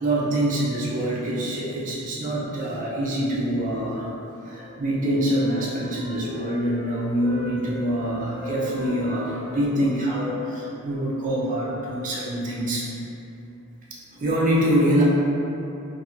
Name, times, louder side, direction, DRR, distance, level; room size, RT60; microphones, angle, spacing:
voice 1, 0.0-4.1 4.5-12.9 14.1-15.0, right 1 dB, 40° right, -6 dB, 0.5 m, -25 dB
Wind instrument woodwind instrument, 4.5-7.9 8.2-12.1, left 1 dB, 35° left, 0.7 m, -41 dB
2.8 x 2.6 x 2.4 m, 2.9 s
head